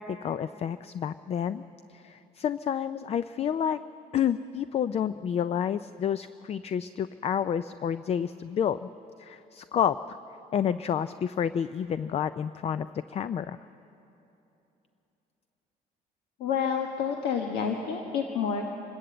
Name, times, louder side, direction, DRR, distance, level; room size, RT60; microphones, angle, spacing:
voice 1, 0.0-1.6 1.9-3.8 4.1-8.9 9.2-10.2 10.5-13.6, left 8 dB, 40° left, 14 dB, 0.4 m, -29 dB
voice 2, 16.4-18.6, left 7 dB, 85° left, 3 dB, 1.4 m, -29 dB
26.0 x 12.5 x 7.9 m, 3.0 s
cardioid pair, 110°, 17 cm